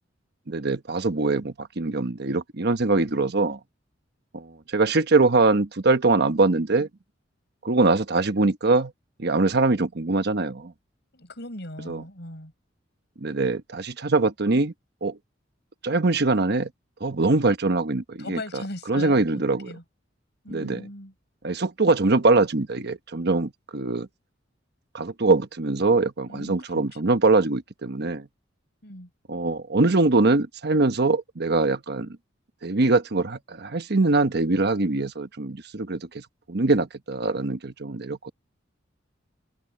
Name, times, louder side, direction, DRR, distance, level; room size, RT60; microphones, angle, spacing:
voice 1, 0.5-3.6 4.3-6.9 7.6-8.9 9.2-10.7 11.9-12.0 13.2-14.7 15.0-15.2 15.8-16.7 17.0-18.4 18.9-19.7 20.5-20.8 21.4-24.1 24.9-28.3 29.3-32.1 32.6-38.3, right 3 dB, 60° right, 1.1 m, -23 dB
voice 2, 11.1-12.5 18.2-19.8 20.4-21.1 26.3-27.0 28.8-29.1, left 1 dB, 60° left, 7.7 m, -39 dB
open air
head